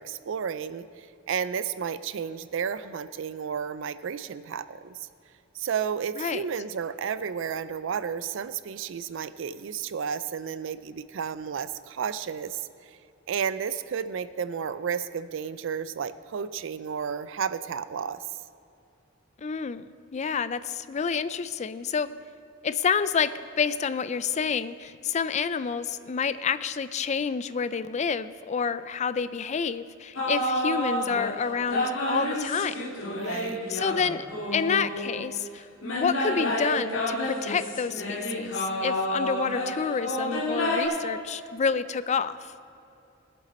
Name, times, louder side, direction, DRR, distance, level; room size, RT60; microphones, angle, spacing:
voice 1, 0.0-5.0 5.5-12.9 13.3-18.2 33.1-33.6, right 7 dB, 65° right, 14 dB, 0.4 m, -32 dB
voice 2, 19.4-19.9 20.1-22.1 22.6-32.7 33.7-34.3 34.5-35.7 35.9-42.5, left 6 dB, 35° left, 14 dB, 0.4 m, -28 dB
sound 1, 30.2-31.4 31.7-35.3 35.8-40.9, left 1 dB, 70° left, 2.1 m, -29 dB
20.0 x 7.9 x 4.2 m, 2.6 s
head